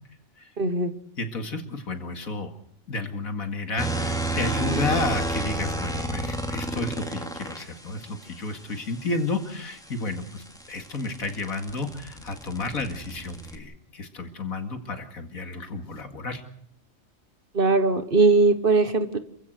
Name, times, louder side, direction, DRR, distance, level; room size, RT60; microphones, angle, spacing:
voice 1, 0.6-0.9 17.5-19.2, right 3 dB, 40° right, 10 dB, 1.4 m, -20 dB
voice 2, 1.2-2.5 2.9-16.4, left 3 dB, 80° left, 6 dB, 2.6 m, -31 dB
sound 1, 3.8-7.6 9.9-13.6, right 1 dB, 5° left, 2.3 m, -30 dB
28.0 x 15.5 x 6.6 m, 0.69 s
omnidirectional pair, 1.4 m